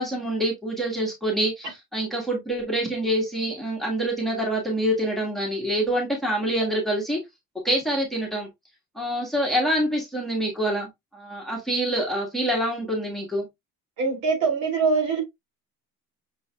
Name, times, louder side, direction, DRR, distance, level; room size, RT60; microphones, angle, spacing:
voice 1, 0.0-7.2 7.6-8.5 8.9-13.4, right 1 dB, ahead, 1.5 m, -26 dB
voice 2, 14.0-15.2, right 4 dB, 65° right, 2.9 m, -23 dB
6.2 x 3.8 x 2.3 m
cardioid pair, 150°, 33 cm